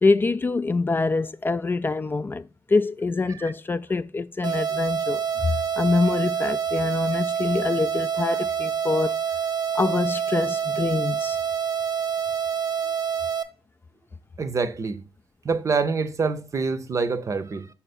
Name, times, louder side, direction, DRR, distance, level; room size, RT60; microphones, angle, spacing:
voice 1, 0.0-9.2 9.7-11.4, left 3 dB, 25° left, 0.4 m, -25 dB
sound 1, 4.4-13.4, right 7 dB, 65° right, 0.9 m, -27 dB
voice 2, 14.4-15.0 15.4-17.7, right 4 dB, 40° right, 0.7 m, -26 dB
5.7 x 4.4 x 4.1 m
cardioid pair, 70°, 8 cm